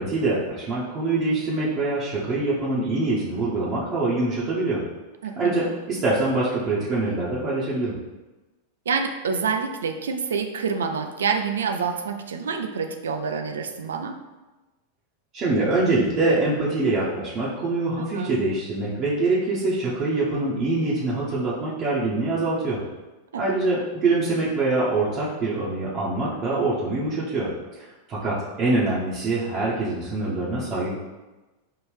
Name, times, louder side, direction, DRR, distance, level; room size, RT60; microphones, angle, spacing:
voice 1, 0.0-4.8 5.4-7.9 15.3-22.8 23.3-31.0, right 2 dB, 30° right, -8 dB, 0.8 m, -24 dB
voice 2, 5.2-5.7 8.9-14.2 18.1-18.4 23.3-23.4, right 5 dB, 65° right, 6 dB, 0.4 m, -27 dB
5.5 x 2.5 x 3.3 m, 1.1 s
figure-of-eight pair, 90°, 0 cm